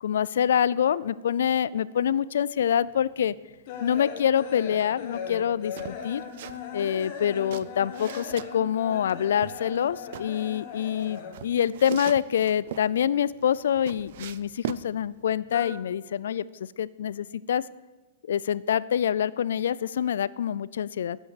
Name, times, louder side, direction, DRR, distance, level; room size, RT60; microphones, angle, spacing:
voice 1, 0.0-3.3 3.8-6.2 6.7-16.4 16.8-17.6 18.3-21.2, left 9 dB, 80° left, 20 dB, 0.4 m, -26 dB
sound 1, 2.8-11.6 11.8-13.0 13.3-14.7 15.0-15.7, left 7 dB, 45° left, 1.5 m, -39 dB
sound 2, 5.8-6.6 6.9-8.5 9.1-10.3 11.0-12.9 13.4-14.9, right 11 dB, 55° right, 0.5 m, -39 dB
11.0 x 8.2 x 6.7 m, 1.2 s
hypercardioid pair, 160°, 0 cm